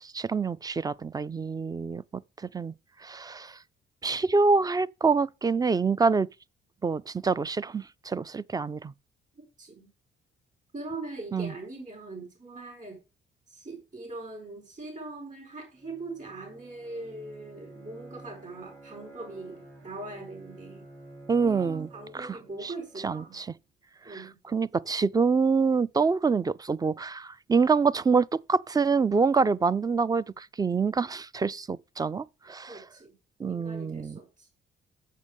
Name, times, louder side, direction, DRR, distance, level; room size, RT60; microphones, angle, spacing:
voice 1, 0.0-2.7 3.0-3.6 4.0-6.3 6.8-8.9 11.3-11.5 21.3-21.9 22.1-22.4 22.6-22.7 23.0-23.5 24.1-24.2 24.5-32.8 33.4-34.2, right 4 dB, 20° right, 0.3 m, -26 dB
voice 2, 9.3-9.9 10.7-13.0 13.5-20.9 21.4-23.4 24.0-24.4 32.7-33.1 33.5-34.5, right 2 dB, 40° right, 5.0 m, -41 dB
Bowed string instrument, 15.7-23.5, right 2 dB, 80° right, 4.8 m, -50 dB
7.4 x 6.8 x 5.2 m
cardioid pair, 90°, 20 cm